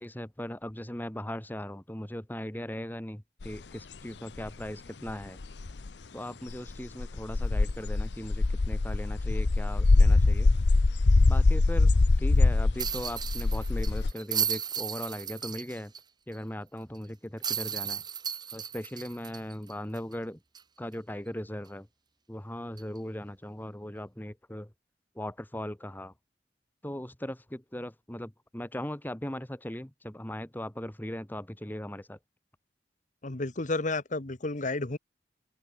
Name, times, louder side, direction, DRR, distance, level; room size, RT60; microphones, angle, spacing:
voice 1, 0.0-5.4 6.1-10.5 11.3-15.9 16.3-18.0 18.5-20.4 20.8-21.9 22.3-24.7 25.1-26.1 26.8-32.2, left 1 dB, 10° left, 1.6 m, -39 dB
sound 1, 3.4-3.5 4.4-4.5 5.1-5.2 5.4-5.9 6.5-14.1, left 3 dB, 75° left, 0.7 m, -23 dB
sound 2, 12.8-16.0 16.3-16.4 17.4-20.1 20.5-20.6 22.8-23.0, right 8 dB, 25° right, 0.9 m, -34 dB
voice 2, 33.2-35.0, left 2 dB, 45° left, 1.3 m, -31 dB
open air
head